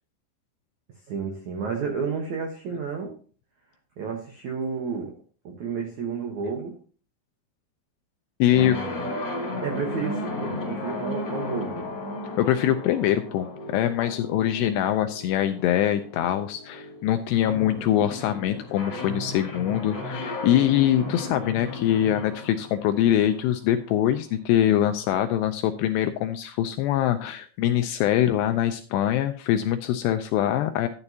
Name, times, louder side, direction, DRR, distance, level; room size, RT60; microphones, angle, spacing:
voice 1, 1.1-3.2 4.0-5.1 5.4-6.7 8.5-9.1 9.6-11.9, right 5 dB, 75° right, 2 dB, 1.7 m, -31 dB
voice 2, 8.4-8.8 12.4-30.9, left 11 dB, 85° left, 8 dB, 2.4 m, -23 dB
sound 1, 8.5-24.3, left 2 dB, 35° left, 2.0 m, -35 dB
12.0 x 9.8 x 2.8 m, 0.39 s
omnidirectional pair, 5.3 m